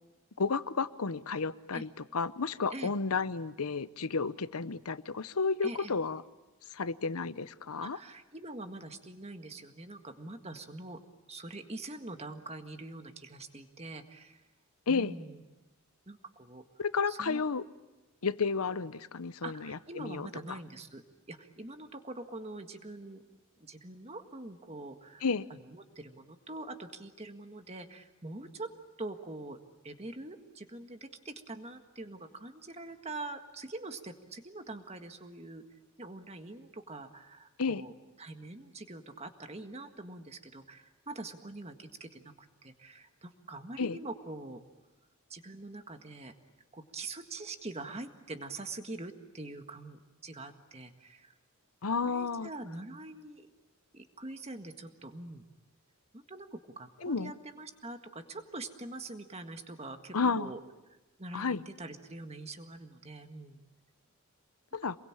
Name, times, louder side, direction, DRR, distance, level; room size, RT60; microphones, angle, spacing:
voice 1, 0.4-6.2 6.7-8.0 14.9-15.1 16.8-17.6 18.2-20.6 25.2-25.4 37.6-37.8 43.8-44.0 51.8-52.5 57.0-57.3 60.1-60.5 61.3-61.6 64.7-65.0, left 4 dB, 85° left, 15 dB, 0.8 m, -32 dB
voice 2, 5.6-6.0 7.8-11.0 11.3-14.4 14.9-15.4 16.1-16.6 17.1-17.4 19.4-21.0 21.3-23.2 23.6-25.2 25.7-28.7 29.0-29.6 29.8-44.6 45.3-46.3 46.7-51.4 52.0-53.5 53.9-55.4 56.1-60.6 61.2-63.6, right 2 dB, 30° right, 7 dB, 1.7 m, -44 dB
28.0 x 22.0 x 8.8 m, 1.1 s
head